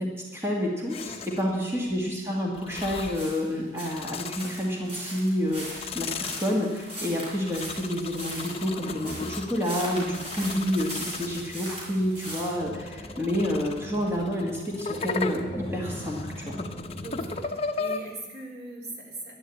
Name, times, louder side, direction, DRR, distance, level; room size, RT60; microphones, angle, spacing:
voice 1, 0.0-16.6, equal, 15° right, -2 dB, 1.9 m, -29 dB
sound 1, 0.9-1.6 2.5-3.3 3.7-5.0 5.5-11.7 12.3-18.0, left 4 dB, 35° left, 0.8 m, -37 dB
sound 2, 3.1-12.5, equal, 35° right, 4.8 m, -39 dB
sound 3, 11.2-17.5, equal, 10° left, 2.5 m, -41 dB
voice 2, 17.0-19.3, right 2 dB, 70° right, -1 dB, 3.6 m, -40 dB
11.0 x 11.0 x 8.6 m, 1.2 s
head